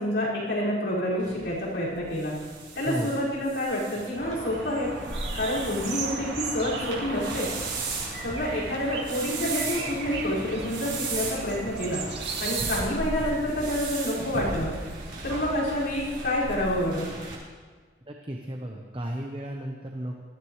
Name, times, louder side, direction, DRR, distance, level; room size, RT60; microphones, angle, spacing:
voice 1, 0.0-2.4 2.8-4.9 5.3-7.5 8.2-12.0 12.4-14.7 15.2-17.1, left 1 dB, 75° left, -7 dB, 5.6 m, -28 dB
sound 1, 1.2-17.3, right 3 dB, 90° right, 4.6 m, -36 dB
sound 2, 4.2-12.8, right 3 dB, 65° right, 2.0 m, -36 dB
voice 2, 18.1-20.2, right 1 dB, 25° right, 1 dB, 0.9 m, -34 dB
19.5 x 14.5 x 3.3 m, 1.5 s
head